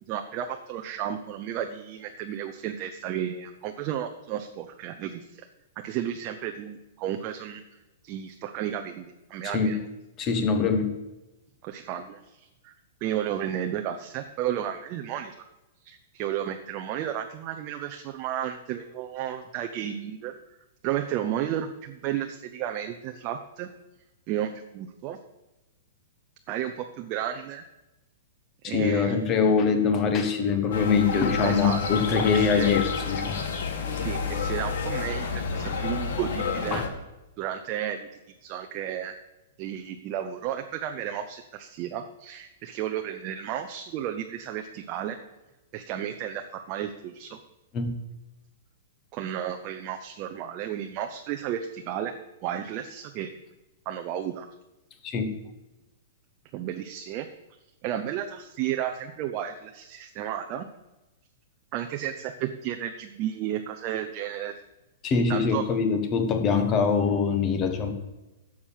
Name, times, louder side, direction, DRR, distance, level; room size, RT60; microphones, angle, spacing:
voice 1, 0.0-5.5 5.8-7.6 8.0-9.8 11.6-12.7 13.0-15.4 15.8-20.3 20.8-23.7 24.3-25.2 26.5-27.6 28.6-29.2 31.4-31.8 32.1-32.7 33.9-36.8 37.4-38.1 38.4-39.1 39.6-45.2 45.7-47.4 49.1-52.2 52.4-53.3 53.9-54.5 56.5-57.3 57.8-60.7 61.7-64.5 65.3-65.6, right 10 dB, 30° right, 5 dB, 0.7 m, -33 dB
voice 2, 10.2-10.9 28.6-33.4 36.7-36.9 47.7-48.0 55.0-55.3 65.0-67.9, left 5 dB, 20° left, 7 dB, 1.3 m, -24 dB
sound 1, 30.7-36.9, left 5 dB, 65° left, 2.0 m, -29 dB
11.0 x 7.3 x 7.3 m, 1.0 s
hypercardioid pair, 165°, 0 cm